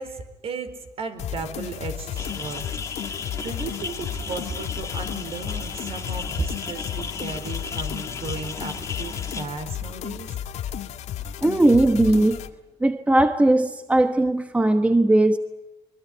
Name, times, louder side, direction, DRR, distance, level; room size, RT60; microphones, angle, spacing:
voice 1, 0.0-2.6 2.9-10.3, right 4 dB, 55° right, 9 dB, 4.2 m, -35 dB
sound 1, 1.2-12.5, left 10 dB, 75° left, 1.6 m, -33 dB
sound 2, 2.2-9.4, left 5 dB, 25° left, 1.9 m, -35 dB
voice 2, 11.4-12.4 12.8-15.4, right 1 dB, 10° right, 8 dB, 1.2 m, -18 dB
24.0 x 23.0 x 10.0 m, 0.96 s
cardioid pair, 130°, 12 cm